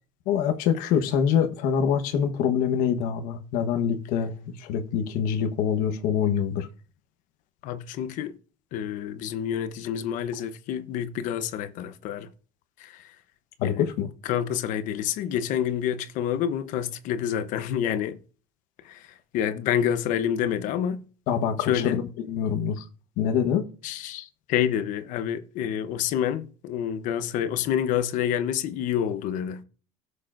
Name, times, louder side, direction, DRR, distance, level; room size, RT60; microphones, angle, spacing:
voice 1, 0.3-6.7 13.6-14.1 21.3-22.8 23.2-23.7, left 8 dB, 90° left, 1.2 m, -25 dB
voice 2, 7.6-8.3 8.7-12.3 12.8-13.0 13.6-13.9 14.2-18.2 18.9-19.0 19.3-21.0 21.7-22.0 23.8-29.6, left 9 dB, 70° left, 0.9 m, -28 dB
17.0 x 6.6 x 2.6 m
cardioid pair, 155°, 14 cm